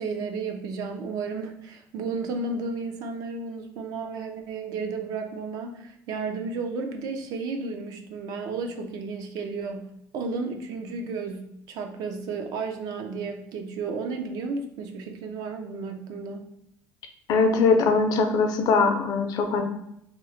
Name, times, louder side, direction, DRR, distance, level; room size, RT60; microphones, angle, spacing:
voice 1, 0.0-9.9 10.1-16.5, right 4 dB, 65° right, 5 dB, 0.5 m, -33 dB
voice 2, 17.3-19.6, left 4 dB, 65° left, 5 dB, 0.5 m, -21 dB
3.0 x 2.0 x 3.8 m, 0.77 s
cardioid pair, 140°, 7 cm